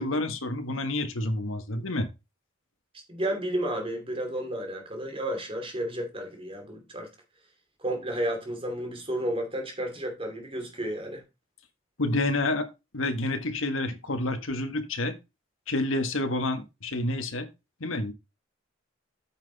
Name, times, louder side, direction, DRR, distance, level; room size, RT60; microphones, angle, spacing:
voice 1, 0.0-2.1 12.0-12.7 12.9-15.1 15.7-17.5 17.8-18.1, left 2 dB, 85° left, 1.5 m, -29 dB
voice 2, 3.1-7.1 7.8-11.2, right 1 dB, 30° right, 2.8 m, -32 dB
8.9 x 6.0 x 4.0 m
head